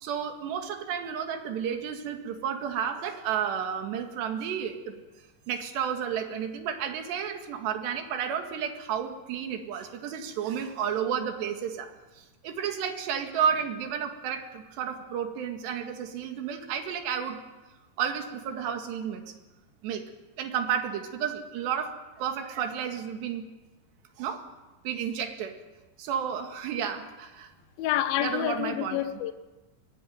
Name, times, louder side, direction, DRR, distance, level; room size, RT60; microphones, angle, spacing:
voice 1, 0.0-5.0 5.5-17.4 18.0-19.3 19.8-20.0 20.4-23.5 24.2-24.4 24.8-25.6 26.0-27.5 28.2-29.0, right 8 dB, 75° right, 4.1 m, -32 dB
voice 2, 27.8-29.3, left 12 dB, 65° left, 2.7 m, -28 dB
23.0 x 18.5 x 9.5 m
omnidirectional pair, 5.1 m